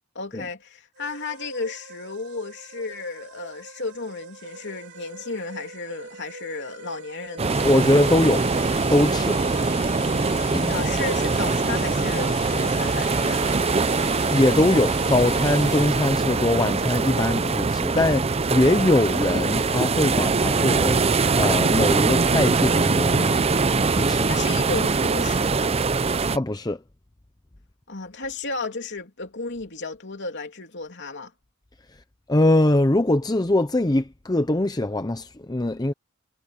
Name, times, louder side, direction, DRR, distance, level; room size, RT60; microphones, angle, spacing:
voice 1, 0.1-7.6 10.7-13.6 24.2-25.7 27.9-31.3, left 3 dB, 55° left, 3.1 m, -33 dB
sound 1, 1.0-16.3, right 3 dB, 55° right, 3.3 m, -43 dB
sound 2, 7.4-26.4, right 4 dB, 30° right, 0.6 m, -22 dB
sound 3, 7.5-15.9, left 7 dB, 40° left, 5.1 m, -39 dB
voice 2, 7.6-8.5 8.9-9.4 10.5-10.7 14.3-23.4 23.9-24.3 26.3-26.8 32.3-35.9, left 1 dB, 20° left, 0.7 m, -22 dB
head